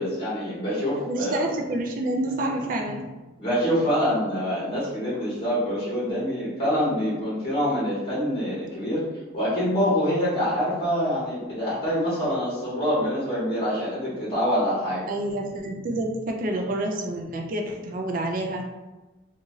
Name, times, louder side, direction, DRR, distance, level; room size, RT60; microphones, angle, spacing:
voice 1, 0.0-1.4 3.4-9.0 9.3-15.0, equal, 30° left, -9 dB, 0.9 m, -25 dB
voice 2, 1.0-3.1 15.1-18.6, right 1 dB, 45° right, 2 dB, 0.3 m, -28 dB
2.6 x 2.4 x 3.0 m, 1.1 s
head